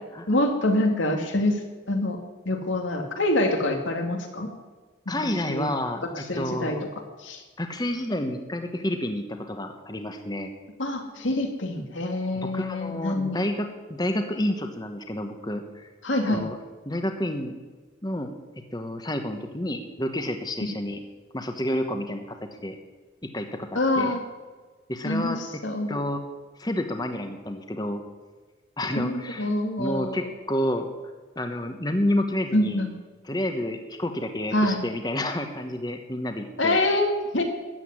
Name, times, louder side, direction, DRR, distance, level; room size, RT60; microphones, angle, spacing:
voice 1, 0.3-2.2 2.5-4.5 5.1-5.2 5.5-5.7 6.1-6.8 7.2-7.4 10.8-13.4 16.0-16.5 20.6-20.7 23.8-24.2 25.0-26.0 28.9-30.2 32.5-32.9 34.5-34.8 36.6-37.4, left 1 dB, 75° left, 4 dB, 2.3 m, -25 dB
voice 2, 5.1-6.0 6.3-6.8 7.6-10.5 12.3-15.9 16.3-16.6 16.8-17.5 18.0-18.3 18.7-21.0 21.3-22.8 23.2-24.2 24.9-25.4 25.9-26.2 26.6-28.0 28.8-30.9 31.4-32.8 33.3-36.8, left 1 dB, 20° left, 6 dB, 1.2 m, -29 dB
13.5 x 8.3 x 9.8 m, 1.3 s
head